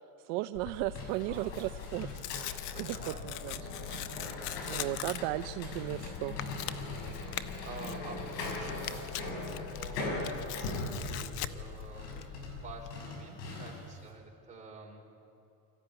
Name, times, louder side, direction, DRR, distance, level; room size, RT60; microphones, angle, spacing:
voice 1, 0.2-2.1 2.4-3.0 3.2-3.7 4.7-6.4, right 17 dB, 55° right, 11 dB, 0.5 m, -35 dB
Tearing, 0.5-12.9, left 10 dB, 70° left, 1.0 m, -42 dB
sound 1, 0.7-14.0, left 2 dB, 85° left, 5.9 m, -41 dB
voice 2, 1.1-1.6 2.7-3.3 3.9-4.2 4.6-5.2 7.2-15.1, right 4 dB, 15° right, -2 dB, 4.0 m, -49 dB
25.0 x 14.0 x 9.8 m, 2.7 s
supercardioid pair, 145°, 48 cm